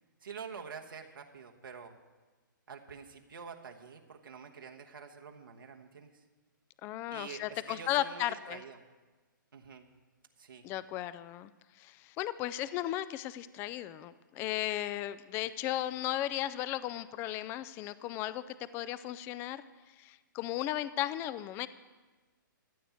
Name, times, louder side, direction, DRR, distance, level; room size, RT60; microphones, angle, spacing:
voice 1, 0.2-1.9 2.7-6.2 7.1-8.8 9.5-9.9 10.4-10.7, right 6 dB, 85° right, 2 dB, 1.2 m, -47 dB
voice 2, 6.8-8.6 10.6-11.5 11.8-19.6 19.9-21.7, left 13 dB, 20° left, 16 dB, 0.3 m, -35 dB
14.0 x 8.0 x 7.1 m, 1.3 s
hypercardioid pair, 135°, 11 cm